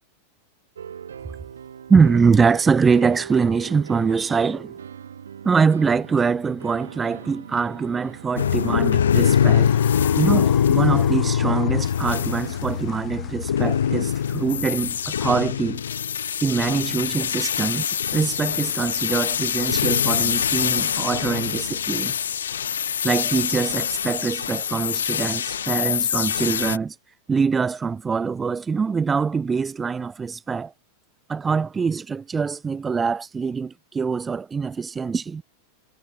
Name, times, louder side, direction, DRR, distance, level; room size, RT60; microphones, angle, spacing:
sound 1, 0.8-10.5, right 8 dB, 70° right, 4.0 m, -41 dB
voice 1, 1.9-4.7 5.4-9.8 10.2-15.8 16.4-22.1 23.0-26.9 27.3-30.7 31.3-35.4, right 5 dB, 15° right, 0.5 m, -23 dB
sound 2, 8.4-26.8, left 8 dB, 65° left, 1.0 m, -23 dB
sound 3, 9.0-15.3, left 10 dB, 25° left, 3.6 m, -43 dB
figure-of-eight pair, 90°, 0 cm